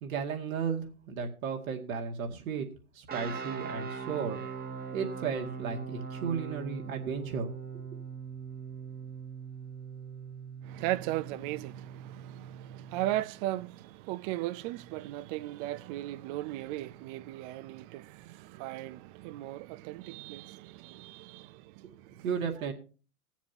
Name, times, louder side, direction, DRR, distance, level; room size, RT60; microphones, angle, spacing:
voice 1, 0.0-2.7 2.9-4.4 4.9-7.5 7.9-8.0 22.2-22.7, right 6 dB, 65° right, 2.2 m, -34 dB
sound 1, 3.1-13.3, right 6 dB, 20° right, 1.2 m, -41 dB
voice 2, 10.6-22.3, right 15 dB, 35° right, 0.5 m, -37 dB
21.0 x 7.3 x 2.8 m
hypercardioid pair, 95°, 44 cm